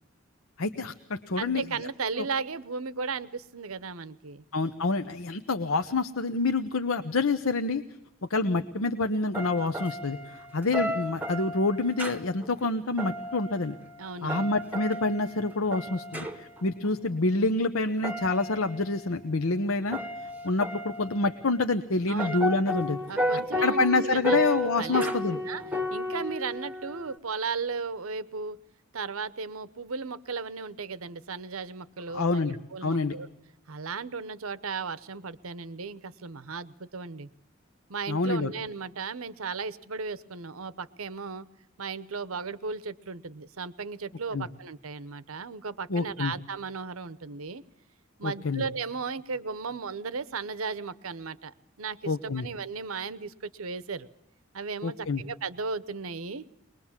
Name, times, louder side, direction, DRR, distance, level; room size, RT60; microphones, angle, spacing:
voice 1, 0.6-1.6 4.5-7.8 8.3-13.8 14.2-23.0 23.6-25.4 32.1-32.6 32.8-33.2 38.1-38.5 44.3-44.5 45.9-46.3 48.2-48.6 52.0-52.5 54.8-55.2, left 3 dB, 80° left, 8 dB, 0.9 m, -27 dB
voice 2, 1.4-4.4 14.0-14.5 22.1-22.4 23.1-24.4 24.8-25.1 25.4-25.6 25.9-28.6 28.9-33.3 33.7-37.3 37.9-41.5 41.8-47.6 48.2-54.1 54.5-56.4, right 5 dB, 90° right, 16 dB, 0.9 m, -35 dB
sound 1, 9.3-16.6 18.0-19.2 19.8-21.6 22.1-27.2, equal, 10° right, 0.9 m, -33 dB
23.0 x 20.5 x 7.3 m, 0.86 s
head